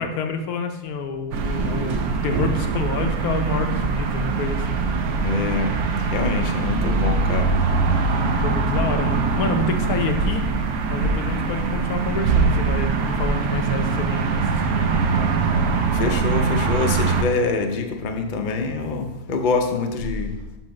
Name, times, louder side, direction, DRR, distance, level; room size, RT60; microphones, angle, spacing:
voice 1, 0.0-4.8 8.1-10.5 10.9-15.3, left 5 dB, 80° left, 6 dB, 1.1 m, -28 dB
sound 1, 1.3-17.2, right 4 dB, 80° right, 1.1 m, -22 dB
voice 2, 5.2-5.8 6.1-7.5 15.9-20.3, left 4 dB, 50° left, 4 dB, 0.5 m, -25 dB
7.1 x 2.7 x 5.8 m, 1.0 s
omnidirectional pair, 1.6 m